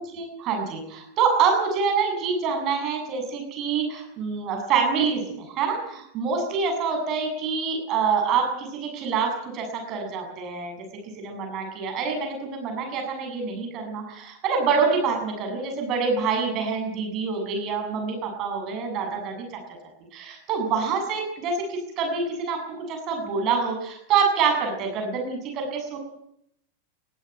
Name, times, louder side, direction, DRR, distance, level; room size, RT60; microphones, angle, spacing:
voice 1, 0.0-10.8 11.2-19.4 20.1-26.0, right 5 dB, 35° right, 3 dB, 7.4 m, -26 dB
21.5 x 15.5 x 9.2 m, 0.74 s
figure-of-eight pair, 90°, 0 cm